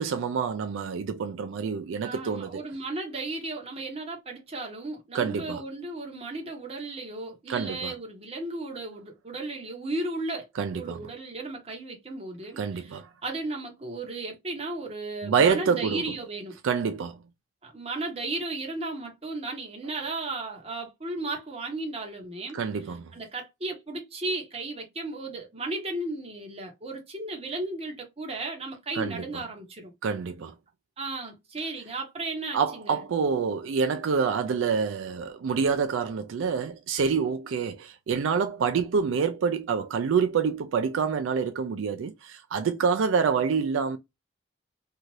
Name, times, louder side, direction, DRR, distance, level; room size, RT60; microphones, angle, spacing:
voice 1, 0.0-2.6 5.1-5.6 7.5-7.9 10.6-11.0 12.6-13.1 15.2-16.0 16.6-17.2 22.5-23.1 29.0-29.4 30.0-30.5 32.5-44.0, right 6 dB, 85° right, 0.4 m, -27 dB
voice 2, 2.0-10.5 10.7-16.6 17.6-22.6 23.1-29.9 31.0-33.0, right 2 dB, 30° right, 0.9 m, -35 dB
2.7 x 2.4 x 3.0 m
head